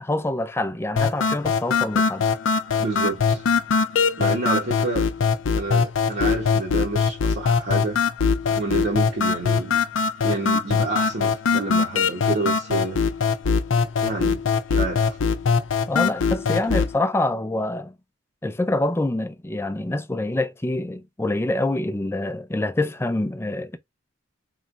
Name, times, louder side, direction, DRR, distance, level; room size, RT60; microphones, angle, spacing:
voice 1, 0.0-2.3 15.9-17.9 18.4-23.8, left 2 dB, 15° left, 0.4 m, -26 dB
sound 1, 1.0-17.0, left 5 dB, 70° left, 0.5 m, -22 dB
voice 2, 2.8-3.4 4.2-5.1 5.5-8.0 8.6-9.8 10.2-13.0 14.0-14.4 14.7-15.2 16.7-16.8, right 2 dB, 60° right, 1.0 m, -28 dB
4.2 x 3.2 x 2.4 m
head